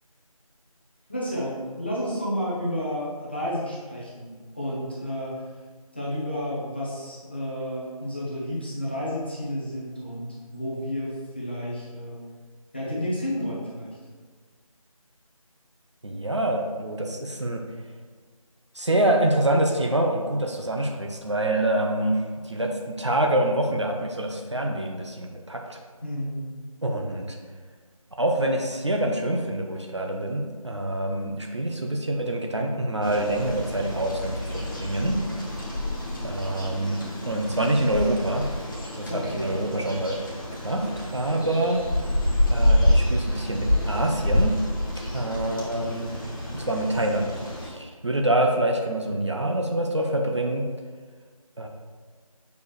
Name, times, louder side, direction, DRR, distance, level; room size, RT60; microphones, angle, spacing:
voice 1, 1.1-5.3 5.9-12.2 12.7-14.0 26.0-26.5 39.1-39.6 41.3-41.5, equal, 15° left, -7 dB, 0.8 m, -31 dB
voice 2, 16.0-17.6 18.7-25.8 26.8-27.4 28.2-35.2 36.2-38.5 38.9-40.2 40.6-41.8 42.5-44.5 45.1-46.1 46.5-47.3 47.6-50.6 51.6-51.7, right 1 dB, 50° right, 2 dB, 0.7 m, -26 dB
sound 1, 33.0-47.7, left 1 dB, 35° left, 1.2 m, -27 dB
7.0 x 4.7 x 3.2 m, 1.5 s
figure-of-eight pair, 170°, 19 cm